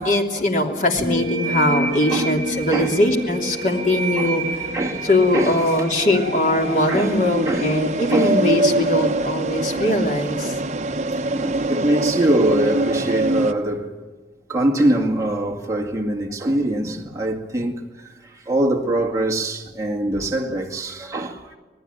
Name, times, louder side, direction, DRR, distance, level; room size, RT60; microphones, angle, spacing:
voice 1, 0.0-4.7 5.0-10.6, left 1 dB, 45° left, 3.1 m, -21 dB
sound 1, 1.0-8.4, right 2 dB, 80° left, 4.4 m, -29 dB
sound 2, 1.9-13.5, right 2 dB, 40° right, 1.0 m, -25 dB
voice 2, 4.7-5.0 5.3-5.6 6.9-7.2 7.5-7.7 8.1-8.4 10.4-10.6 11.2-14.0 14.5-21.6, right 1 dB, 20° right, 2.1 m, -23 dB
26.5 x 19.0 x 9.2 m
head